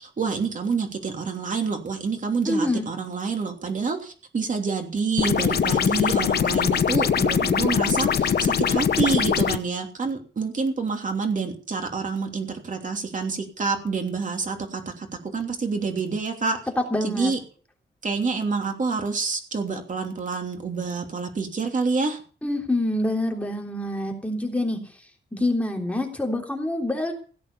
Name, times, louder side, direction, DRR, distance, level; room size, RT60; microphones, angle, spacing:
voice 1, 0.0-16.6 17.0-17.4 18.0-22.2, right 4 dB, 45° right, 4 dB, 3.1 m, -27 dB
voice 2, 2.4-2.8 16.9-17.3 22.4-24.8 25.3-27.1, left 1 dB, 5° left, 1 dB, 3.4 m, -26 dB
sound 1, 5.2-9.6, left 7 dB, 60° left, 0.9 m, -22 dB
17.0 x 8.4 x 7.0 m, 0.40 s
wide cardioid pair, 140°, 19 cm